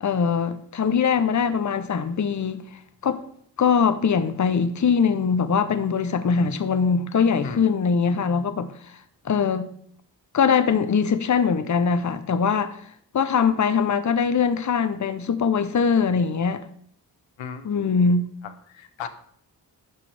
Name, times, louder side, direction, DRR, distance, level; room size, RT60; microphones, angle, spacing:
voice 1, 0.0-2.6 3.0-3.2 3.6-8.7 9.2-9.7 10.3-12.8 13.1-16.6 17.6-18.2, left 6 dB, 40° left, 0.8 m, -22 dB
voice 2, 18.4-19.1, left 7 dB, 85° left, 0.8 m, -36 dB
11.0 x 6.0 x 3.4 m
cardioid pair, 45°, 45 cm